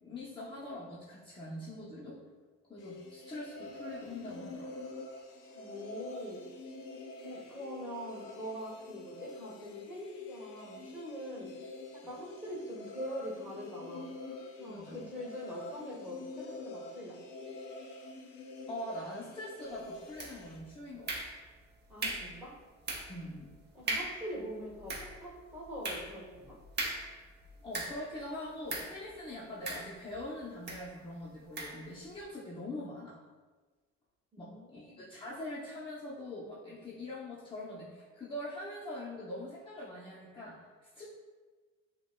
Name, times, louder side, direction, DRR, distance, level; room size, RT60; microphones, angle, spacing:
voice 1, 0.0-2.2 2.7-4.7 14.7-15.0 18.7-21.1 23.1-23.5 27.6-33.2 34.4-41.0, left 1 dB, 15° left, -7 dB, 0.7 m, -43 dB
sound 1, 2.8-20.6, left 2 dB, 90° left, 0.6 m, -47 dB
voice 2, 5.5-6.4 7.2-11.5 12.0-14.1 14.6-17.2 21.9-22.5 23.7-26.6 34.3-35.0, equal, 5° right, -6 dB, 1.3 m, -43 dB
sound 2, 20.2-20.6 21.1-21.6 22.0-22.4 22.9-23.2 23.5-23.6 23.9-24.3 24.7-28.2 28.7-29.0 29.7-30.2 30.7-30.9 31.6-31.8, right 2 dB, 35° right, 0.7 m, -38 dB
5.8 x 2.2 x 2.2 m, 1.4 s
cardioid pair, 90°, 30 cm